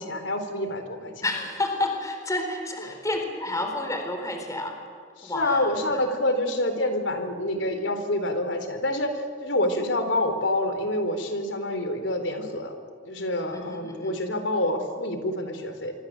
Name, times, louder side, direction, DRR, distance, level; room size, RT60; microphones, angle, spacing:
voice 1, 0.0-1.2 5.2-12.7 13.0-15.9, left 1 dB, 85° left, 7 dB, 4.1 m, -27 dB
voice 2, 1.2-4.8 5.2-6.1 13.5-14.2, left 2 dB, 20° left, 4 dB, 3.9 m, -30 dB
26.0 x 25.0 x 7.9 m, 2.2 s
head